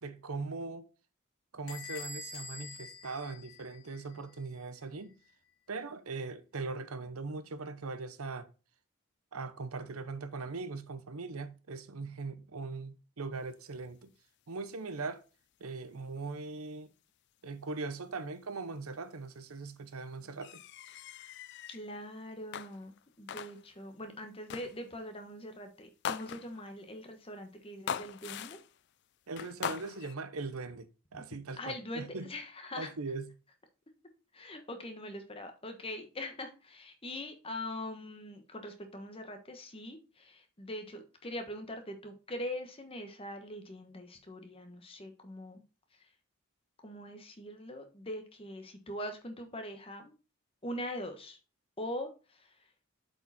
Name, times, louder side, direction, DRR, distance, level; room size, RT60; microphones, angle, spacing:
voice 1, 0.0-0.9 1.5-5.2 5.7-8.5 9.3-14.1 14.5-15.2 15.6-16.9 17.4-20.6 29.3-32.3 32.8-33.3, right 3 dB, 85° right, 0.8 m, -40 dB
Bell / Door, 1.7-4.2, left 3 dB, 70° left, 2.5 m, -45 dB
sound 1, 20.4-21.8 22.5-23.0 23.3-23.8 24.5-24.9 26.0-26.7 27.9-28.8 29.4-30.1, left 8 dB, 50° left, 0.4 m, -40 dB
voice 2, 21.7-28.6 31.6-32.9 34.3-45.6 46.0-46.1 46.8-50.1 50.6-51.4 51.8-52.5, left 1 dB, 25° left, 1.2 m, -42 dB
7.8 x 5.0 x 4.1 m
head